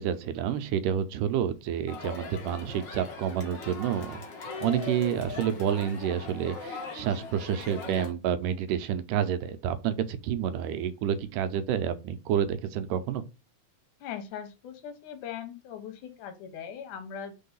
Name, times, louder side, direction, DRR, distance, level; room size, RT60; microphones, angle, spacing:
voice 1, 0.0-4.2 4.6-13.3, right 9 dB, 90° right, 2.2 m, -29 dB
Crowd, 1.9-8.1, left 4 dB, 50° left, 1.4 m, -40 dB
voice 2, 14.0-17.4, left 8 dB, 75° left, 2.4 m, -40 dB
4.6 x 4.3 x 5.5 m
omnidirectional pair, 3.7 m